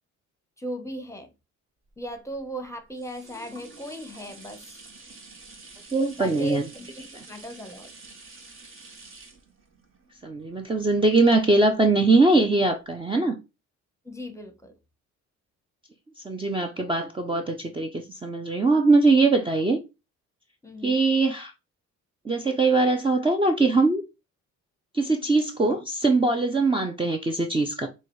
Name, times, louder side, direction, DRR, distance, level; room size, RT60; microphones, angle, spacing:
voice 1, 0.6-1.3 2.0-4.7 6.2-7.9 8.9-9.0 14.0-14.8 20.6-21.0, right 1 dB, 10° left, 1.0 m, -37 dB
sound 1, 1.9-11.7 12.2-12.3, right 3 dB, 45° right, 1.4 m, -48 dB
voice 2, 5.9-6.6 7.1-7.2 10.2-13.4 16.2-19.8 20.8-21.5 22.2-24.0 24.9-27.9, right 3 dB, 15° right, 0.7 m, -22 dB
6.5 x 2.4 x 3.2 m
cardioid pair, 90°, 30 cm